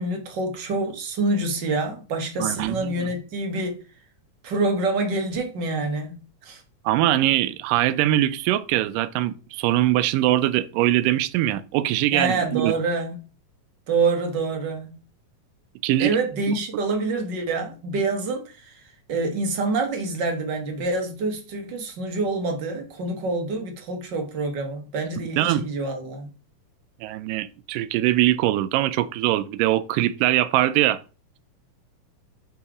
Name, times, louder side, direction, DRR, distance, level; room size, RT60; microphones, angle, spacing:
voice 1, 0.0-3.8 4.4-6.6 12.1-13.2 13.9-14.9 16.0-18.8 19.1-26.3, right 3 dB, 65° right, 1.1 m, -26 dB
voice 2, 2.4-3.1 6.9-12.7 15.8-16.2 25.4-25.6 27.0-31.0, right 14 dB, 85° right, 2.2 m, -22 dB
6.9 x 3.9 x 4.8 m
omnidirectional pair, 3.9 m